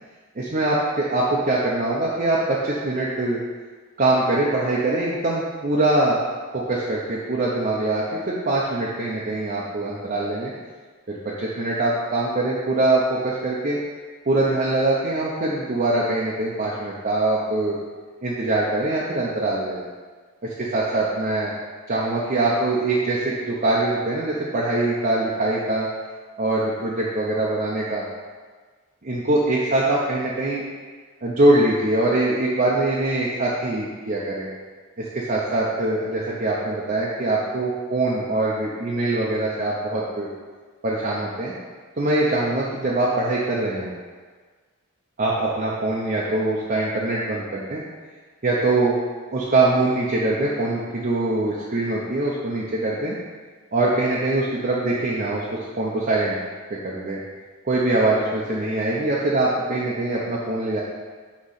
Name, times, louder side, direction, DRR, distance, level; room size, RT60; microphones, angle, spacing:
voice 1, 0.4-3.4 4.0-6.2 6.5-10.5 11.1-13.8 14.3-17.8 18.2-19.9 20.4-21.5 21.9-25.9 26.4-28.1 29.0-30.6 31.2-34.5 35.0-40.3 40.8-41.5 42.0-43.9 45.2-47.8 48.4-49.0 49.3-53.2 53.7-56.4 56.7-57.2 57.6-60.8, right 2 dB, 40° right, -5 dB, 0.7 m, -23 dB
6.4 x 3.1 x 5.6 m, 1.5 s
head